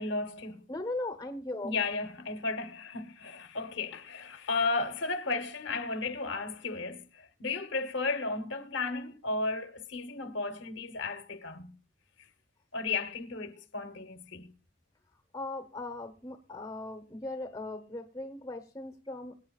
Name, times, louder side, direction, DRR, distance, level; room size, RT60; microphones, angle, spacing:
voice 1, 0.0-0.6 1.6-11.8 12.2-12.3 12.7-14.5, left 3 dB, 75° left, 1.1 m, -34 dB
voice 2, 0.7-1.7 15.3-19.3, left 2 dB, 20° left, 1.0 m, -38 dB
24.5 x 8.7 x 2.4 m
head